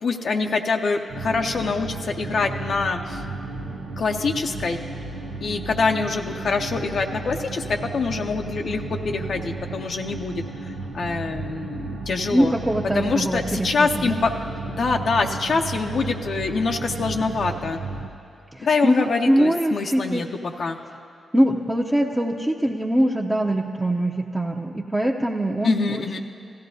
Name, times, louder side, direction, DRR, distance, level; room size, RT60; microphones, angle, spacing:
voice 1, 0.0-3.2 4.0-4.8 5.4-12.5 12.9-14.3 14.7-17.8 18.6-20.3 20.6-20.8 25.6-26.2, left 4 dB, 65° left, 3 dB, 0.6 m, -25 dB
sound 1, 1.1-18.1, right 3 dB, 90° right, 0.6 m, -33 dB
voice 2, 12.3-14.2 18.5-20.3 21.3-26.0, right 1 dB, 15° right, -2 dB, 0.7 m, -23 dB
16.0 x 13.5 x 2.7 m, 2.5 s
supercardioid pair, 45°, 0 cm